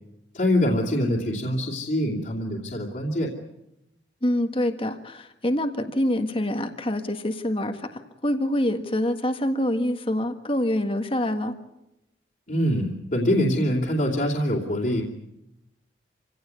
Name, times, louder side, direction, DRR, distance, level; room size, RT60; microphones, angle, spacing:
voice 1, 0.3-3.3 12.5-15.0, equal, 50° left, -3 dB, 2.9 m, -24 dB
voice 2, 4.2-11.5, left 1 dB, 30° left, 6 dB, 1.6 m, -26 dB
27.0 x 17.0 x 9.6 m, 0.89 s
head